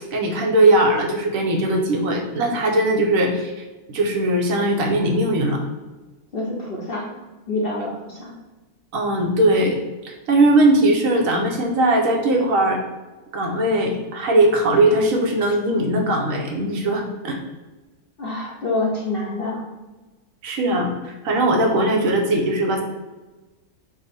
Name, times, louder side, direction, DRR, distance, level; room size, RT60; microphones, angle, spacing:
voice 1, 0.1-3.5 3.9-5.7 8.9-9.8 10.0-12.8 13.3-17.4 20.4-22.8, right 1 dB, 70° right, 1 dB, 1.0 m, -19 dB
voice 2, 6.3-7.2 7.5-8.3 18.2-19.6, left 2 dB, 55° left, -3 dB, 0.6 m, -26 dB
5.1 x 2.1 x 4.0 m, 1.2 s
omnidirectional pair, 1.6 m